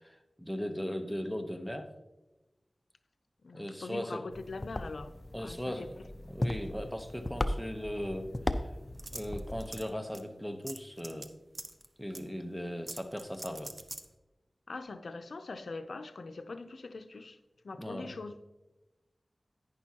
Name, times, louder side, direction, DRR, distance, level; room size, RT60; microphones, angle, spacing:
voice 1, 0.0-1.9 3.5-4.3 5.3-8.7 9.1-11.3 12.0-13.7 17.8-18.1, equal, ahead, 0.9 m, -38 dB
voice 2, 3.4-5.9 14.7-17.4 17.6-18.4, left 3 dB, 85° left, 0.5 m, -42 dB
sound 1, 4.3-9.9, left 1 dB, 30° left, 0.6 m, -37 dB
sound 2, 9.0-9.9 10.1-10.2 10.7-11.3 11.6-11.9 12.1-12.2 12.9-14.1, right 2 dB, 40° right, 0.8 m, -43 dB
10.5 x 9.9 x 2.9 m
wide cardioid pair, 70°, 0 cm